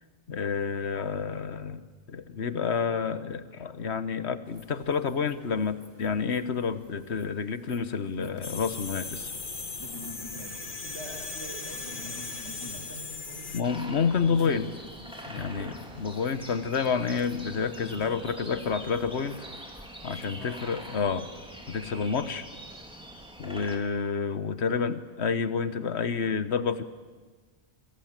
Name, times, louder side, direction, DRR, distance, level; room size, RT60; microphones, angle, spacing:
voice 1, 0.3-9.3 13.5-14.7 15.3-15.7 16.0-19.5 20.0-21.3 21.7-22.4 23.4-26.8, left 6 dB, 75° left, 12 dB, 1.5 m, -29 dB
sound 1, 4.5-21.1, left 1 dB, 20° left, 2.3 m, -50 dB
sound 2, 8.4-13.6, left 3 dB, 50° left, 1.8 m, -38 dB
voice 2, 10.3-13.8 15.4-16.0 20.3-20.7 24.6-24.8, right 1 dB, 85° right, 1 dB, 7.4 m, -47 dB
sound 3, 13.6-23.8, equal, 5° right, 3.4 m, -44 dB
27.0 x 27.0 x 7.6 m, 1.4 s
omnidirectional pair, 1.1 m